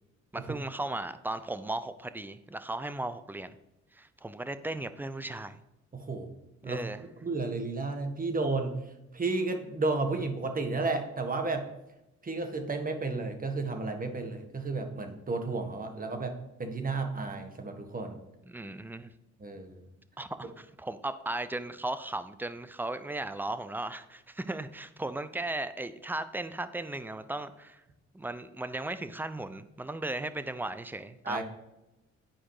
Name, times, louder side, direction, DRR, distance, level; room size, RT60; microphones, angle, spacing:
voice 1, 0.3-3.6 3.9-5.6 6.6-7.0 18.5-19.1 20.2-27.8 28.1-31.4, right 2 dB, 5° right, 12 dB, 0.6 m, -36 dB
voice 2, 5.9-6.3 6.6-8.8 9.1-11.7 12.2-18.2 19.4-19.8 31.2-31.4, right 3 dB, 30° right, 5 dB, 1.7 m, -32 dB
10.5 x 4.9 x 4.9 m, 0.92 s
cardioid pair, 90°, 30 cm